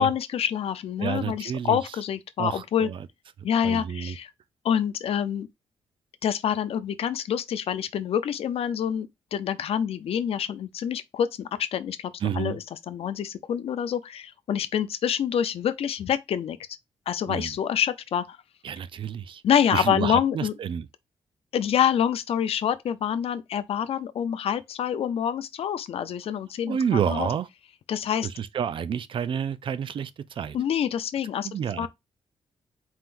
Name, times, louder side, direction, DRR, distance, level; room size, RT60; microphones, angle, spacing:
voice 1, 0.0-2.9 3.4-4.3 4.6-5.5 6.2-16.6 17.1-18.4 19.4-20.5 21.5-26.8 27.1-27.3 27.9-28.3 30.5-31.5 31.8-31.9, left 9 dB, 65° left, 0.5 m, -26 dB
voice 2, 1.0-1.8 2.4-3.1 3.6-4.2 12.2-12.6 17.3-17.6 18.6-19.4 19.7-20.9 26.7-27.5 28.2-30.6 31.4-31.9, right 8 dB, 50° right, 0.4 m, -29 dB
4.5 x 3.7 x 2.5 m
wide cardioid pair, 135°, 11 cm